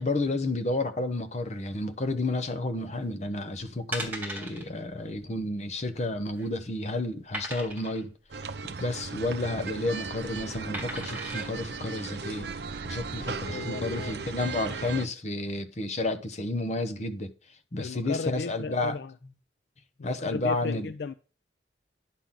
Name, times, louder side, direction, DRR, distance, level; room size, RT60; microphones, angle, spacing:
voice 1, 0.0-8.1 8.8-12.5 12.8-17.3 17.7-19.0 20.0-20.9, left 2 dB, 40° left, 0.8 m, -31 dB
sound 1, 3.3-3.4 3.9-4.6 5.0-5.2 5.4-5.5 6.1-6.6 7.3-8.0 9.3-9.7 10.7-11.5 12.1-12.2, right 1 dB, 10° right, 2.2 m, -37 dB
sound 2, 8.3-15.1, right 4 dB, 65° right, 0.6 m, -37 dB
voice 2, 13.1-14.2 17.8-19.1 20.0-21.1, left 4 dB, 65° left, 0.4 m, -36 dB
10.0 x 5.9 x 3.8 m
head